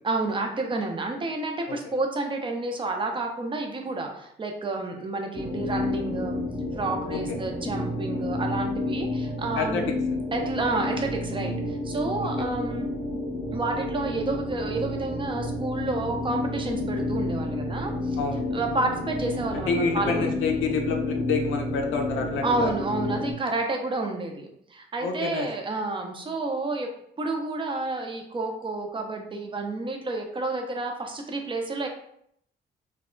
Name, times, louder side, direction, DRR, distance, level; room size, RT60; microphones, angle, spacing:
voice 1, 0.0-6.4 6.7-9.9 10.3-12.9 13.5-18.2 18.5-20.3 22.4-26.9 27.2-31.9, right 2 dB, 25° right, 3 dB, 0.5 m, -30 dB
sound 1, 5.3-23.3, left 1 dB, 15° left, 0.7 m, -30 dB
voice 2, 19.5-22.7 25.0-25.5, left 5 dB, 80° left, 3 dB, 0.5 m, -28 dB
2.2 x 2.0 x 3.7 m, 0.71 s
cardioid pair, 90°, 20 cm